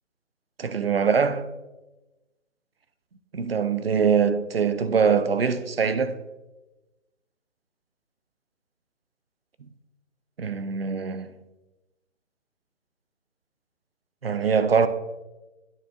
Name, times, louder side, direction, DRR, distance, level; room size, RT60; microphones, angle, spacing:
voice 1, 0.6-1.5 3.3-6.2 10.4-11.4 14.2-14.9, right 6 dB, 50° right, 0.5 m, -23 dB
9.4 x 6.9 x 2.5 m
hypercardioid pair, 170°, 39 cm